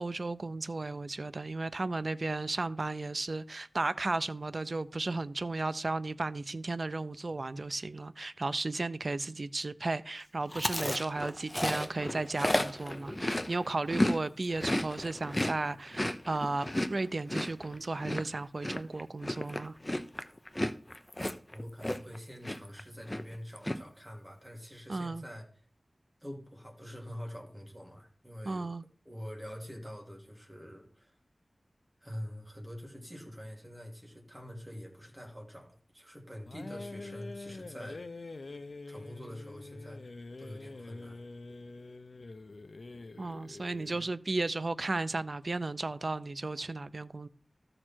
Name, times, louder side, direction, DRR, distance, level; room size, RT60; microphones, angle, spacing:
voice 1, 0.0-19.8 24.9-25.2 28.4-28.8 43.2-47.3, right 2 dB, 50° right, 0.5 m, -34 dB
Chewing mastication, 10.5-14.2 14.4-22.2 22.4-22.8 23.1-23.8, left 1 dB, 15° left, 0.7 m, -33 dB
voice 2, 21.5-25.5 26.2-28.7 29.0-31.1 32.0-38.0 38.9-40.0 40.4-41.2, equal, 10° right, 3.0 m, -45 dB
sound 1, 36.5-44.1, left 3 dB, 65° left, 0.7 m, -45 dB
13.5 x 6.5 x 4.5 m
wide cardioid pair, 80°, 0 cm